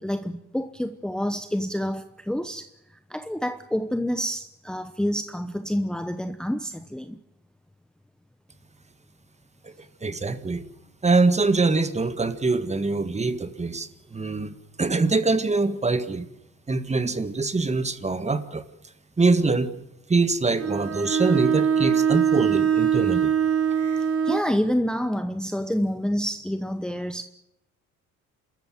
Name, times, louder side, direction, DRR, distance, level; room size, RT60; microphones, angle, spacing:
voice 1, 0.0-7.2 24.2-27.2, equal, ahead, 9 dB, 1.0 m, -28 dB
voice 2, 10.0-10.7 11.0-16.3 16.7-18.6 19.2-19.7 20.1-23.3 23.8-24.0, right 3 dB, 20° right, 11 dB, 1.8 m, -24 dB
Bowed string instrument, 20.6-24.5, right 8 dB, 50° right, 1.5 m, -22 dB
27.0 x 14.0 x 9.0 m, 0.87 s
cardioid pair, 90°, 30 cm